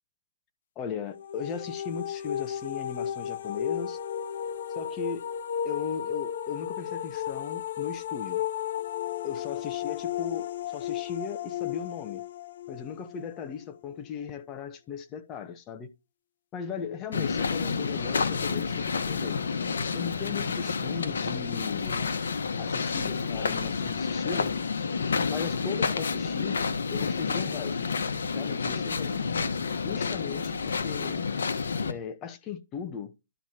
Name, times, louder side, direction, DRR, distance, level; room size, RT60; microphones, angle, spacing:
voice 1, 0.8-4.0 4.7-5.3 5.6-8.4 9.2-12.2 12.7-15.9 16.5-19.4 19.9-22.1 22.6-24.5 25.3-26.6 26.9-27.8 28.3-29.1 29.8-31.2 31.9-33.1, left 7 dB, 20° left, 1.0 m, -37 dB
sound 1, 1.1-14.0, left 10 dB, 55° left, 0.5 m, -34 dB
sound 2, 17.1-31.9, left 5 dB, 75° left, 1.2 m, -29 dB
12.5 x 4.6 x 2.9 m
hypercardioid pair, 150°, 0 cm